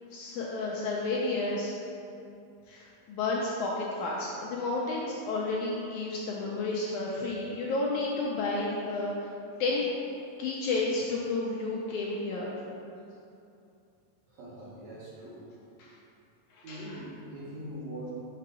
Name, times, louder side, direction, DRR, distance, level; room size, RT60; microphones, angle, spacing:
voice 1, 0.1-1.7 2.7-9.3 9.6-9.9 10.4-12.5 15.8-15.9 16.5-17.0, left 3 dB, 80° left, -3 dB, 1.8 m, -31 dB
voice 2, 14.3-15.4 16.6-18.1, equal, 65° right, -7 dB, 2.0 m, -42 dB
6.7 x 3.7 x 4.8 m, 2.6 s
omnidirectional pair, 3.9 m